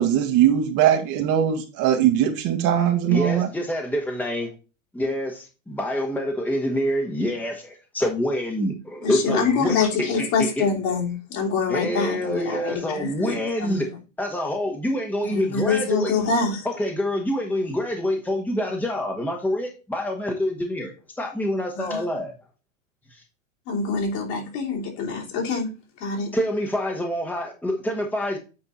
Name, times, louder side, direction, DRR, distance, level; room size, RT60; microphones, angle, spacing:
voice 1, 0.0-3.5, right 10 dB, 45° right, 4 dB, 1.7 m, -20 dB
voice 2, 3.1-4.5 4.9-10.6 11.7-13.9 14.2-16.1 16.6-22.4 23.1-23.2 26.3-28.4, equal, 5° left, 2 dB, 1.4 m, -26 dB
voice 3, 9.0-14.0 15.2-16.7 21.7-22.0 23.7-25.7 26.0-26.3, left 5 dB, 50° left, 0 dB, 3.2 m, -25 dB
8.7 x 4.3 x 4.1 m, 0.32 s
hypercardioid pair, 105°, 40 cm